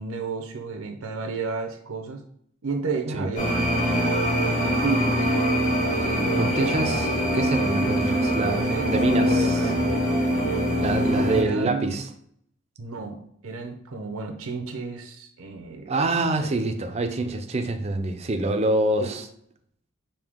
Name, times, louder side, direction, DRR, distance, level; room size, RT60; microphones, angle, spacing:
voice 1, 0.0-2.2 2.6-4.1 4.5-5.3 5.8-7.0 7.8-8.2 8.5-9.9 10.9-12.0 12.8-13.2 13.4-15.9 16.4-16.7 19.0-19.1, right 4 dB, 80° right, 4 dB, 0.6 m, -32 dB
sound 1, 3.4-11.4, equal, 35° left, 1.4 m, -23 dB
voice 2, 6.4-9.7 10.8-12.1 15.9-19.2, right 2 dB, 30° right, 6 dB, 0.4 m, -26 dB
5.1 x 2.7 x 3.6 m, 0.68 s
head